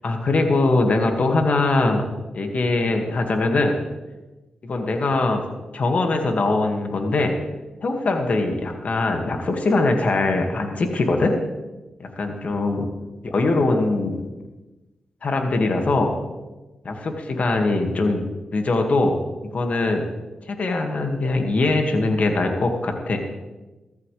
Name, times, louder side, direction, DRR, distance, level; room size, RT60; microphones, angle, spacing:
voice 1, 0.0-2.1 2.3-3.8 4.6-5.4 5.7-7.4 7.8-11.3 12.0-12.9 13.2-14.3 15.2-16.1 16.8-19.2 19.5-20.0 20.5-23.2, left 2 dB, 60° left, 4 dB, 1.9 m, -22 dB
15.0 x 14.0 x 3.3 m, 1.1 s
supercardioid pair, 45°, 3 cm